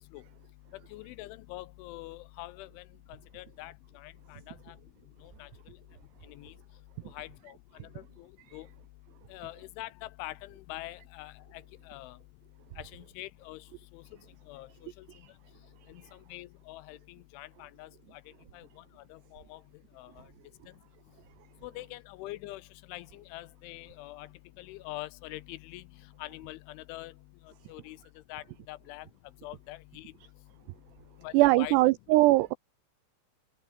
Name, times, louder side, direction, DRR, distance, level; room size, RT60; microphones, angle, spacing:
voice 1, 0.9-4.8 5.2-5.8 6.3-6.5 7.1-7.6 7.8-7.9 8.2-8.3 8.5-8.7 9.3-12.2 12.8-13.6 13.9-14.0 14.5-14.7 15.0-15.1 15.9-16.0 16.3-18.2 18.5-18.8 19.1-19.6 20.0-20.2 21.6-22.6 22.9-24.3 24.6-25.8 26.2-27.1 27.7-28.0 28.3-29.1 29.4-30.1 31.2-31.8, left 18 dB, 80° left, 3.2 m, -44 dB
voice 2, 31.3-32.5, right 19 dB, 90° right, 2.4 m, -21 dB
omnidirectional pair, 5.6 m